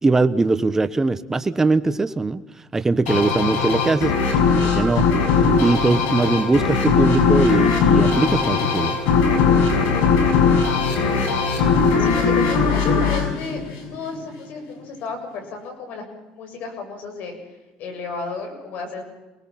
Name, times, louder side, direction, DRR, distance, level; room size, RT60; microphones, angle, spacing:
voice 1, 0.0-2.4 2.7-5.1 5.6-8.9, right 3 dB, 15° right, 11 dB, 1.2 m, -21 dB
sound 1, 3.1-14.3, left 5 dB, 90° left, 6.4 m, -19 dB
voice 2, 10.5-11.4 12.0-13.6 13.9-16.1 16.3-17.4 17.8-19.0, left 4 dB, 60° left, 5 dB, 7.3 m, -33 dB
29.0 x 19.5 x 5.9 m, 1.1 s
cardioid pair, 130°, 3 cm